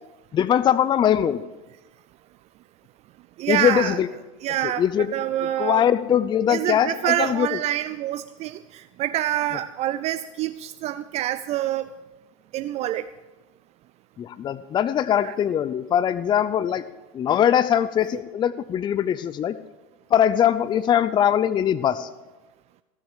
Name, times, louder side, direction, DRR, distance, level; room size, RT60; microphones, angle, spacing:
voice 1, 0.3-1.4 3.5-4.1 4.8-5.1 5.6-7.6 14.2-16.8 17.1-19.6 20.1-22.1, left 9 dB, 30° left, 14 dB, 0.6 m, -21 dB
voice 2, 3.4-4.0 4.4-4.8 5.1-5.8 6.5-11.9 12.5-13.1 15.2-15.3, right 13 dB, 40° right, 12 dB, 0.5 m, -26 dB
16.5 x 6.4 x 8.4 m, 1.1 s
hypercardioid pair, 100°, 16 cm